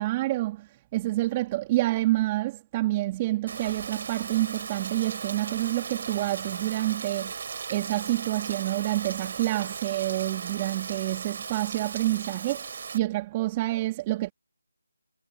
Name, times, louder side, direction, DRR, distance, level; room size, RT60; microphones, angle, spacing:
voice 1, 0.0-7.4 7.7-14.3, right 17 dB, 20° right, 2.9 m, -28 dB
Rain, 3.5-13.0, right 6 dB, 40° right, 3.7 m, -37 dB
figure-of-eight pair, 160°, 0 cm